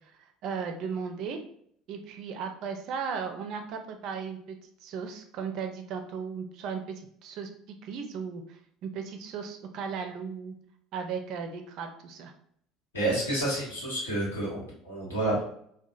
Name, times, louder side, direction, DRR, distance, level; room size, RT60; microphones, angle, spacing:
voice 1, 0.4-1.4 1.9-7.5 7.8-8.4 8.8-10.5 10.9-12.3, right 6 dB, 55° right, 5 dB, 0.4 m, -36 dB
voice 2, 12.9-15.4, right 1 dB, 85° left, -6 dB, 1.1 m, -29 dB
2.8 x 2.1 x 2.4 m, 0.67 s
figure-of-eight pair, 65°, 0 cm